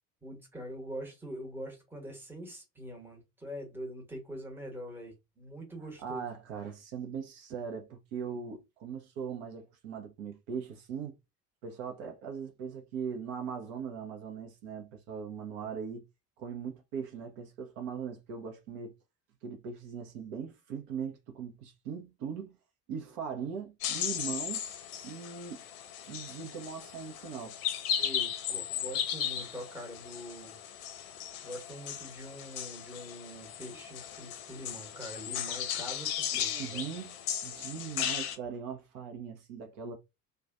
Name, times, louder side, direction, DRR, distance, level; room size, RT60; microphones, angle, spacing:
voice 1, 0.2-6.2 15.6-15.7 28.0-30.6 31.4-36.8, equal, 5° right, 0.9 m, -44 dB
voice 2, 6.0-11.2 11.6-16.1 16.4-18.9 19.4-22.6 22.9-24.6 25.0-25.6 26.1-27.6 36.4-39.9, right 6 dB, 55° right, 0.7 m, -40 dB
sound 1, 23.8-38.4, left 9 dB, 60° left, 0.6 m, -36 dB
2.4 x 2.3 x 2.4 m
figure-of-eight pair, 60°, 48 cm